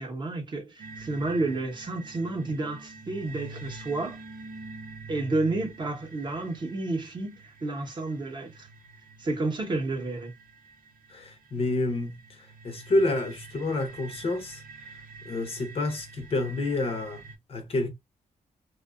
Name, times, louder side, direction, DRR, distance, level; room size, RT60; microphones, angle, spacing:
voice 1, 0.0-4.2 5.1-8.7 9.2-10.3, right 2 dB, 30° right, 0.7 m, -31 dB
sound 1, 0.8-17.4, right 3 dB, 80° right, 0.6 m, -46 dB
voice 2, 11.1-14.6 15.2-17.2 17.5-17.9, left 2 dB, 40° left, 0.6 m, -29 dB
2.6 x 2.1 x 2.3 m
wide cardioid pair, 170°, 15 cm